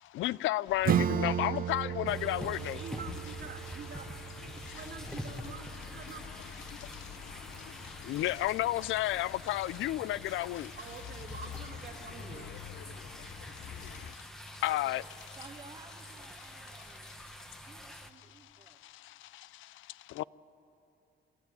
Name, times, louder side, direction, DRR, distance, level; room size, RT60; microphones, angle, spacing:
voice 1, 0.0-2.8 4.5-4.8 6.7-10.8 12.7-15.4 16.4-17.4 17.9-20.2, left 15 dB, 80° left, 0.4 m, -35 dB
sound 1, 0.7-14.1, left 9 dB, 60° left, 0.9 m, -49 dB
Acoustic guitar / Strum, 0.8-6.1, right 9 dB, 45° right, 0.5 m, -34 dB
sound 2, 2.0-18.1, equal, ahead, 1.1 m, -47 dB
voice 2, 2.7-4.1 4.4-6.4 10.6-12.5 14.7-15.1, right 6 dB, 60° right, 2.3 m, -47 dB
voice 3, 15.4-17.1 17.6-18.8, right 3 dB, 25° right, 1.2 m, -54 dB
26.5 x 13.0 x 9.6 m
cardioid pair, 90°, 20 cm